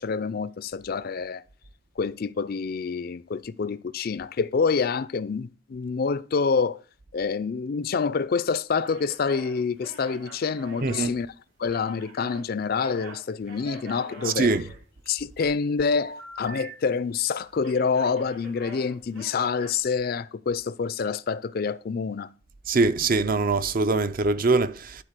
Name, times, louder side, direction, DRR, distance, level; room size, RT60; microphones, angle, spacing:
voice 1, 0.0-1.4 2.0-6.8 7.1-11.3 11.6-14.5 15.1-22.3, left 5 dB, 50° left, 0.4 m, -27 dB
sound 1, 8.8-12.4 12.7-15.2 15.9-17.3 17.6-19.8, right 2 dB, 75° right, 2.5 m, -44 dB
voice 2, 14.3-14.6 22.7-25.0, right 3 dB, 45° right, 0.6 m, -23 dB
11.5 x 4.1 x 6.7 m
head